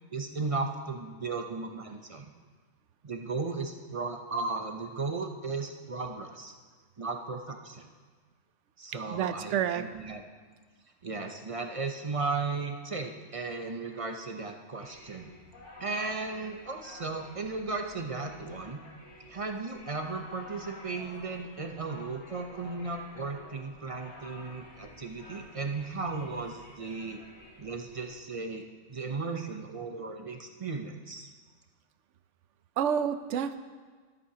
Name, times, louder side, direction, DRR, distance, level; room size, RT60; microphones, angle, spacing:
voice 1, 0.1-2.3 3.0-6.5 7.0-7.9 8.8-10.2 11.0-15.3 15.8-18.8 19.3-27.2 27.6-28.6 28.9-31.3, right 4 dB, 35° right, 4 dB, 0.6 m, -35 dB
voice 2, 9.1-9.9 32.8-33.6, right 8 dB, 65° right, 11 dB, 0.8 m, -29 dB
sound 1, 14.8-28.1, left 1 dB, 75° left, 3.2 m, -51 dB
13.5 x 13.0 x 2.8 m, 1.5 s
omnidirectional pair, 1.5 m